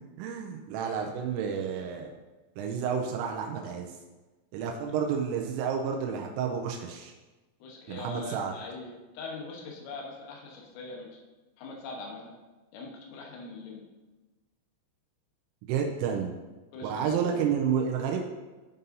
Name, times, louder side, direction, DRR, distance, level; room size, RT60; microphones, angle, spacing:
voice 1, 0.2-2.1 2.6-4.0 4.5-7.1 7.9-8.5 15.7-16.3 16.8-18.2, right 7 dB, 90° right, 2 dB, 3.2 m, -30 dB
voice 2, 7.6-11.2 11.6-12.3 12.7-13.8 16.7-17.5, left 3 dB, 80° left, -1 dB, 3.8 m, -42 dB
14.0 x 5.5 x 2.7 m, 1.2 s
omnidirectional pair, 5.7 m